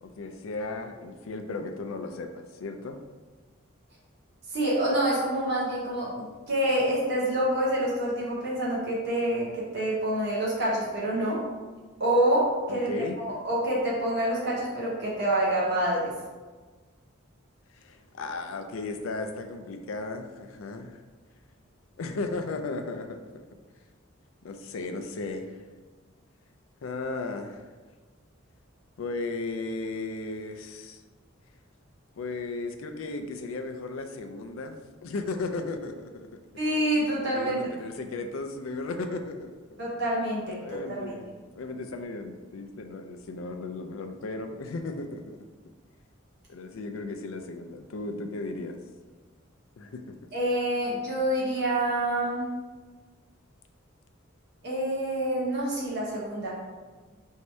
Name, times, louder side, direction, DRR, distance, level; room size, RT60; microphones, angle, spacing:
voice 1, 0.0-3.0 6.0-6.1 12.7-13.2 17.7-21.0 22.0-23.4 24.4-25.6 26.8-27.6 29.0-31.0 32.2-34.8 35.0-36.4 37.3-39.8 40.6-41.3 41.5-45.5 46.5-48.8 49.8-50.2, left 3 dB, 75° left, 6 dB, 0.4 m, -35 dB
voice 2, 4.5-11.4 12.0-12.9 13.2-16.1 36.6-37.6 39.8-41.2 50.3-52.5 54.6-56.5, right 1 dB, 50° right, -6 dB, 0.9 m, -27 dB
3.1 x 2.7 x 4.5 m, 1.4 s
head